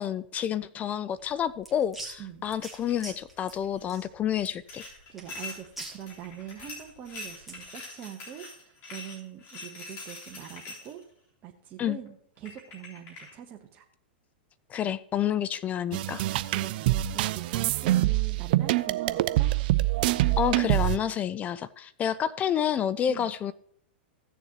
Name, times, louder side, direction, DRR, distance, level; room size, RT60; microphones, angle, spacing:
voice 1, 0.0-4.8 11.8-12.0 14.7-16.2 20.4-23.5, left 9 dB, 25° left, 0.3 m, -29 dB
sound 1, 1.2-7.7, right 2 dB, ahead, 2.0 m, -45 dB
sound 2, 2.6-3.0 3.4-3.8 4.7-11.0 12.1-12.2 12.4-13.3, left 3 dB, 40° left, 3.7 m, -44 dB
voice 2, 5.1-11.0 11.4-13.8 16.5-19.5 23.1-23.3, right 10 dB, 35° right, 1.0 m, -43 dB
sound 3, 15.9-21.0, right 16 dB, 55° right, 0.4 m, -25 dB
16.0 x 7.0 x 2.9 m
hypercardioid pair, 120°, 6 cm